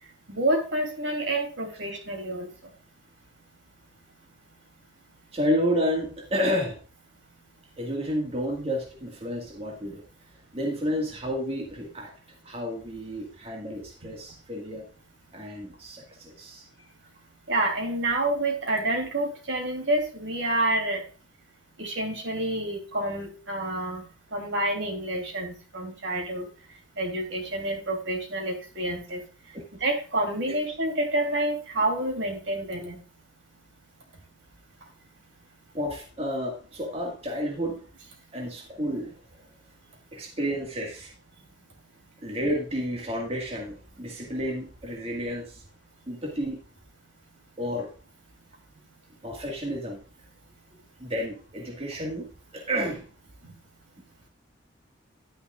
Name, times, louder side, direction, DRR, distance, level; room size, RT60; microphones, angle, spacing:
voice 1, 0.3-2.5 14.0-14.1 17.5-21.0 21.8-26.5 27.0-29.2 29.8-33.0, right 1 dB, 70° right, 3 dB, 3.1 m, -28 dB
voice 2, 5.3-6.8 7.8-10.0 10.5-12.1 12.4-14.8 15.3-16.7 29.5-29.6 35.7-37.8 38.3-39.1 40.1-41.1 42.2-45.6 46.1-46.6 47.6-47.9 49.2-50.0 51.0-53.1, equal, 30° right, 0 dB, 1.8 m, -31 dB
11.0 x 9.9 x 2.4 m, 0.38 s
head